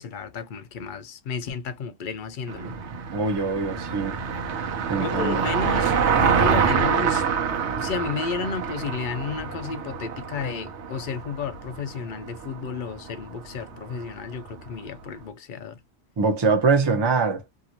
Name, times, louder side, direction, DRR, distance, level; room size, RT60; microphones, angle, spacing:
voice 1, 0.0-2.8 5.0-7.3 7.8-15.8, left 5 dB, 60° left, 0.6 m, -32 dB
Car passing by, 2.5-14.8, right 6 dB, 80° right, 1.0 m, -26 dB
voice 2, 3.1-4.1 4.9-5.5 16.2-17.4, right 4 dB, 30° right, 0.6 m, -23 dB
2.6 x 2.5 x 2.8 m
omnidirectional pair, 1.2 m